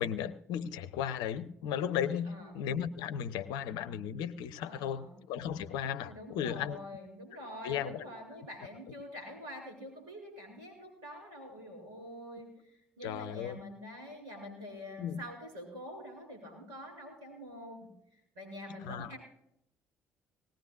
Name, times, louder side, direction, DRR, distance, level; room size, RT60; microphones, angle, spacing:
voice 1, 0.0-6.8 7.6-8.0 13.0-13.6 15.0-15.2 18.8-19.1, left 9 dB, 65° left, 14 dB, 0.7 m, -35 dB
voice 2, 4.6-5.1 6.0-12.5 13.0-17.9 18.4-19.2, equal, 70° right, 1 dB, 7.3 m, -46 dB
20.0 x 18.0 x 2.5 m, 0.77 s
figure-of-eight pair, 45°, 8 cm